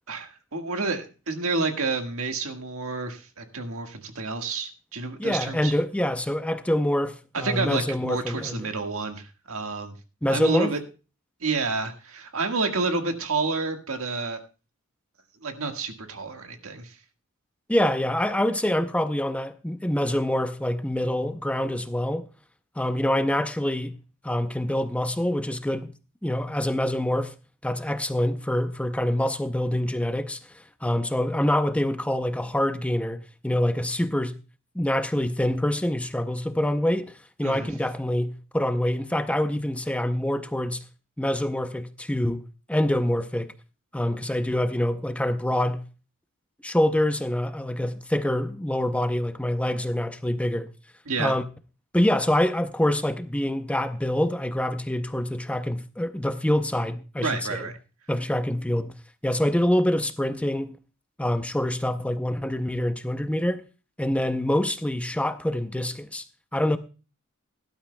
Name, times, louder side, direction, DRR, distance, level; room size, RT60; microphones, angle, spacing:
voice 1, 0.1-5.7 7.3-9.9 10.3-10.8 11.4-14.4 15.4-16.9 37.4-37.7 51.1-51.3 57.2-57.8, right 3 dB, 85° right, 1.6 m, -29 dB
voice 2, 5.2-8.6 10.2-10.7 17.7-22.3 22.8-23.9 24.2-25.9 26.2-27.3 27.6-34.4 34.7-37.1 37.4-40.8 41.2-42.4 42.7-43.5 43.9-45.8 46.6-50.7 51.2-51.4 51.9-57.3 58.1-58.9 59.2-60.7 61.2-63.6 64.0-66.2 66.5-66.8, left 1 dB, 5° left, 0.6 m, -25 dB
17.5 x 12.0 x 2.2 m
head